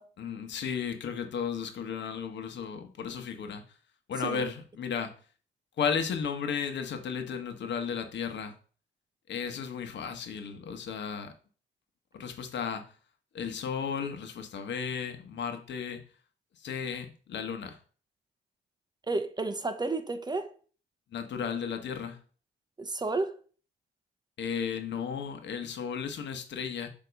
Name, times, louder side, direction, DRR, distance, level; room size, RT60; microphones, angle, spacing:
voice 1, 0.2-3.6 4.1-5.1 5.8-8.5 9.3-11.3 12.1-12.9 13.3-16.0 16.6-17.8 21.1-22.2 24.4-26.9, left 6 dB, 65° left, 1.1 m, -34 dB
voice 2, 19.1-20.5 22.8-23.4, right 3 dB, 20° right, 0.6 m, -31 dB
6.9 x 2.9 x 5.2 m
cardioid pair, 90°, 20 cm